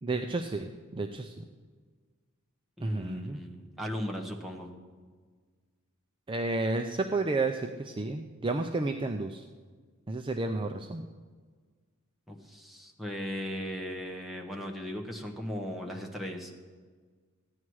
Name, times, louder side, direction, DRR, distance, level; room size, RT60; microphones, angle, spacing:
voice 1, 0.0-1.4 2.8-3.4 6.3-9.4 10.1-11.1, right 2 dB, 25° right, 5 dB, 0.5 m, -31 dB
voice 2, 2.8-4.7 12.3-16.5, equal, ahead, 0 dB, 1.2 m, -37 dB
14.0 x 9.8 x 4.7 m, 1.5 s
head